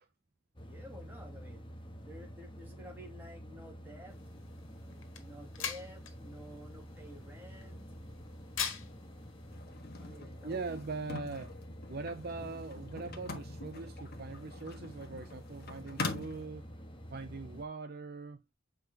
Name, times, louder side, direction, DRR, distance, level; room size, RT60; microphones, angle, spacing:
sound 1, 0.6-17.7, equal, 25° left, 1.4 m, -49 dB
voice 1, 0.6-1.6 2.1-4.2 5.2-7.8 10.0-10.8, equal, 10° right, 2.4 m, -51 dB
sound 2, 4.1-9.5, left 7 dB, 80° left, 1.7 m, -44 dB
sound 3, 9.5-16.5, left 3 dB, 50° left, 1.4 m, -43 dB
voice 2, 10.4-11.6 11.9-16.7 17.1-18.4, right 4 dB, 50° right, 0.6 m, -41 dB
7.4 x 4.9 x 2.8 m
head